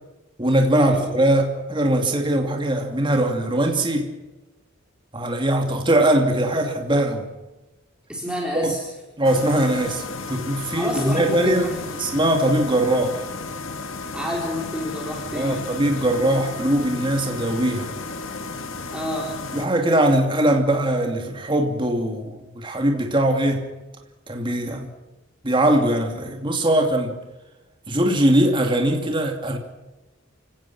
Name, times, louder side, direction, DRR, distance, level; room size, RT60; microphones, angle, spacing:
voice 1, 0.4-4.1 5.1-7.3 8.5-8.7 9.2-11.7 12.0-13.2 15.3-17.9 19.5-23.7 24.3-24.9 25.4-27.2 27.9-29.6, right 1 dB, 25° right, 2.6 m, -21 dB
voice 2, 8.1-8.8 10.7-12.0 14.1-15.7 18.9-19.3, equal, 5° right, 4.0 m, -28 dB
sound 1, 9.2-19.7, left 4 dB, 75° left, 2.0 m, -33 dB
29.0 x 18.0 x 6.1 m
head